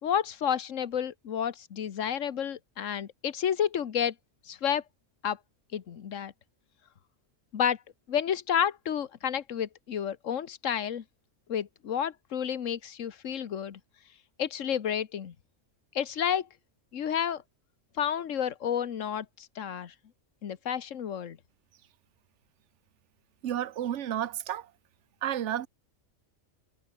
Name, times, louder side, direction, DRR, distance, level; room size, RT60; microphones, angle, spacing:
voice 1, 0.0-4.1 4.4-4.8 5.2-5.4 5.7-6.3 7.5-7.8 8.1-11.0 11.5-13.8 14.4-15.3 15.9-16.5 16.9-17.4 18.0-19.9 20.4-21.4, left 8 dB, 75° left, 1.5 m, -30 dB
voice 2, 23.4-24.7 25.2-25.7, right 11 dB, 70° right, 1.1 m, -31 dB
omnidirectional pair, 1.3 m